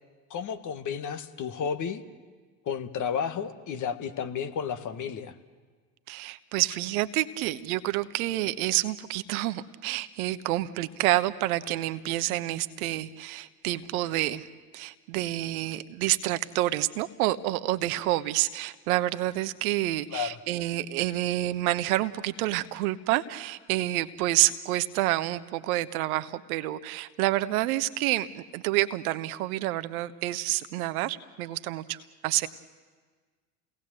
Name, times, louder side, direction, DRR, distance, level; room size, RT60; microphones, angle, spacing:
voice 1, 0.3-2.0 2.7-5.3 20.1-20.4, left 7 dB, 40° left, 9 dB, 1.8 m, -32 dB
voice 2, 6.1-14.4 14.7-32.5, right 16 dB, 70° right, 12 dB, 1.1 m, -28 dB
29.0 x 18.5 x 7.7 m, 1.5 s
hypercardioid pair, 80°, 45 cm